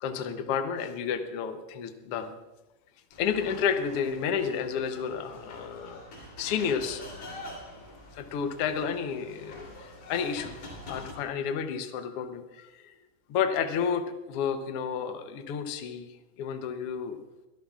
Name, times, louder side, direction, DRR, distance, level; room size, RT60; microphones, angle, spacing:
voice 1, 0.0-2.3 3.2-6.0 6.4-7.0 8.1-10.6 10.9-12.9 13.3-16.1 16.4-17.2, left 7 dB, 80° left, 7 dB, 1.3 m, -31 dB
sound 1, 3.1-11.1, left 1 dB, 45° left, 4.2 m, -45 dB
24.0 x 13.0 x 2.4 m, 1.1 s
omnidirectional pair, 3.8 m